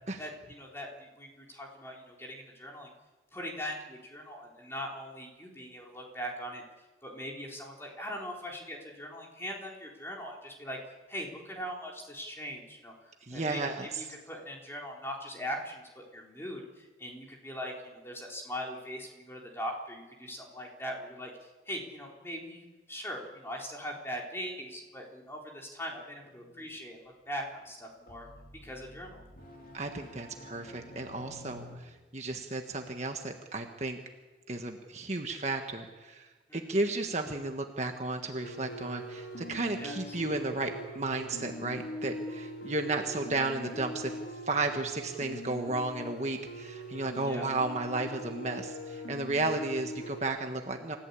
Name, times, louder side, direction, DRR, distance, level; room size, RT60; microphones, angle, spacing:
voice 1, 0.2-2.9 3.3-6.6 7.0-10.8 11.1-12.9 13.3-22.6 22.9-27.0 27.3-28.3 28.6-29.2 36.5-36.8 39.8-40.2 47.3-47.5, equal, 15° left, -1 dB, 4.1 m, -41 dB
voice 2, 13.3-13.9 29.7-34.0 34.5-44.1 44.4-51.0, right 2 dB, 40° right, 4 dB, 1.5 m, -33 dB
sound 1, 26.2-26.8 27.7-31.8, left 1 dB, 50° left, 3.3 m, -51 dB
sound 2, 38.4-50.2, equal, 80° left, 3.3 m, -42 dB
28.5 x 15.0 x 8.5 m, 1.3 s
head